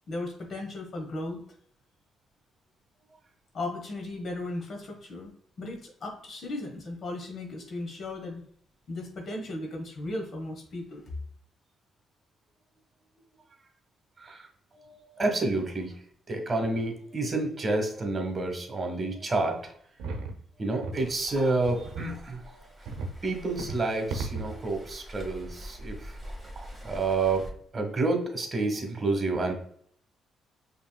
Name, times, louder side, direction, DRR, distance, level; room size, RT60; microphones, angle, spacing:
voice 1, 0.1-1.4 3.5-5.3 5.6-8.4 8.9-11.0, left 2 dB, 55° left, 2 dB, 1.2 m, -36 dB
voice 2, 14.2-19.7 20.6-22.7 23.2-26.2 26.5-27.5 27.7-29.5, right 3 dB, 30° right, 3 dB, 1.4 m, -29 dB
sound 1, 20.0-20.3 20.8-21.0 21.7-22.1 22.8-23.2 23.6-23.8 24.1-24.5, right 3 dB, 90° right, 0.7 m, -35 dB
Waves surf, 20.9-27.5, equal, ahead, 1.7 m, -45 dB
5.3 x 3.4 x 2.2 m, 0.63 s
cardioid pair, 90°, 0 cm